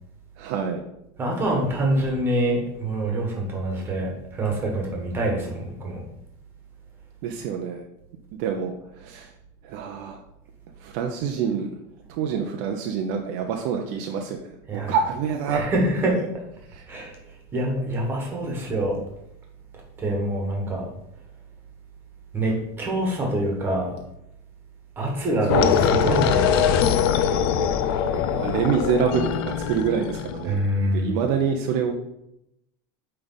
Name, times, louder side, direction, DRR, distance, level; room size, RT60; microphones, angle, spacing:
voice 1, 0.4-0.8 7.2-7.8 8.4-8.7 9.0-9.3 9.6-10.2 10.8-11.7 12.1-15.6 16.1-16.3 16.7-16.8 25.5-26.2 28.3-30.6 30.9-31.9, right 7 dB, 50° right, 3 dB, 0.6 m, -26 dB
voice 2, 1.2-6.0 14.7-15.0 15.5-16.4 16.9-17.2 17.5-19.0 20.0-20.8 22.3-24.0 25.0-26.9 30.4-31.2, right 1 dB, 15° right, -1 dB, 1.4 m, -25 dB
sound 1, 25.5-30.6, left 8 dB, 70° left, 0.5 m, -22 dB
8.8 x 3.3 x 4.0 m, 0.82 s
cardioid pair, 180°, 13 cm